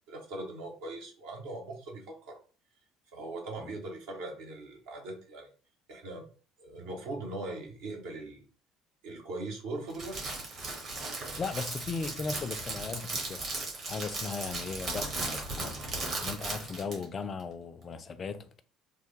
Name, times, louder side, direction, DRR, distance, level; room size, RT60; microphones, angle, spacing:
voice 1, 0.1-2.4 3.1-5.5 5.9-6.3 6.6-8.4 9.0-10.4 11.1-11.4, right 2 dB, 65° right, 0.8 m, -40 dB
Crackle, 9.9-17.0, right 2 dB, 45° right, 1.2 m, -36 dB
voice 2, 11.1-13.6 13.9-18.6, left 5 dB, 35° left, 0.3 m, -38 dB
3.2 x 2.1 x 3.0 m
figure-of-eight pair, 55°, 0 cm